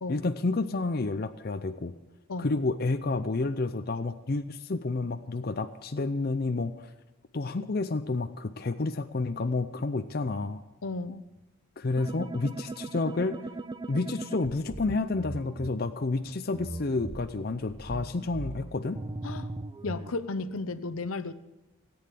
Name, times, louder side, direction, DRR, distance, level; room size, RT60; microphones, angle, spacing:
voice 1, 0.1-1.9 2.4-6.9 7.3-10.6 11.8-13.4 13.9-19.0, left 3 dB, 45° left, 8 dB, 0.6 m, -30 dB
voice 2, 10.8-11.2 19.2-19.5 19.8-21.3, left 3 dB, 80° left, 12 dB, 0.8 m, -34 dB
sound 1, 12.0-15.7 16.5-20.1, right 2 dB, 20° right, 0.4 m, -39 dB
17.0 x 8.8 x 7.4 m, 0.98 s
head